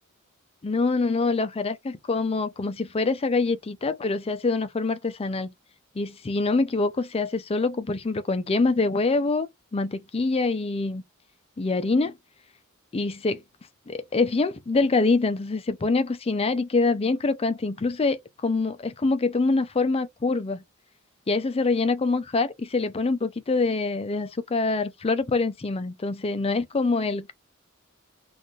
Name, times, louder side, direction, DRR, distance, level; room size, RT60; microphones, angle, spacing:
voice 1, 0.6-5.5 6.0-11.0 11.6-12.2 12.9-13.4 13.9-20.6 21.3-27.3, left 3 dB, 30° left, 0.4 m, -25 dB
4.2 x 2.5 x 3.1 m
head